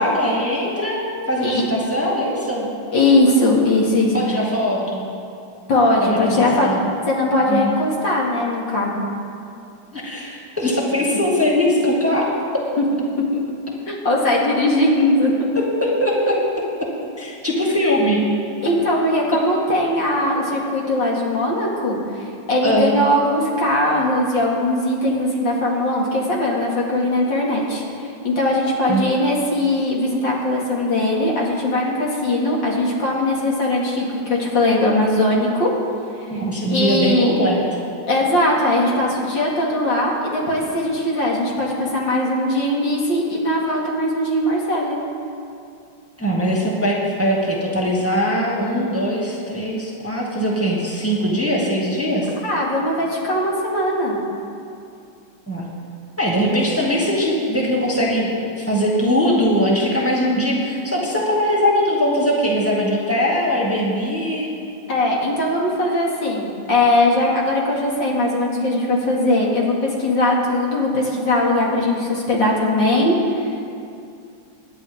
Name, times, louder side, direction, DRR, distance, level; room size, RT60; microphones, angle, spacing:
voice 1, 0.0-2.7 4.1-5.1 6.0-6.9 7.5-7.7 9.9-12.3 15.5-16.4 17.2-18.2 19.3-19.4 22.6-22.9 28.9-29.0 36.3-37.6 46.2-52.3 55.5-55.7 56.2-64.5, equal, 5° right, -4 dB, 1.9 m, -21 dB
voice 2, 2.9-4.1 5.7-6.7 7.1-9.0 12.8-12.9 13.3-13.4 13.9-15.3 18.6-27.8 28.2-35.7 36.7-37.3 38.1-45.0 52.4-54.2 64.9-73.6, left 1 dB, 65° left, -3 dB, 2.9 m, -20 dB
26.5 x 10.5 x 3.6 m, 2.5 s
omnidirectional pair, 2.2 m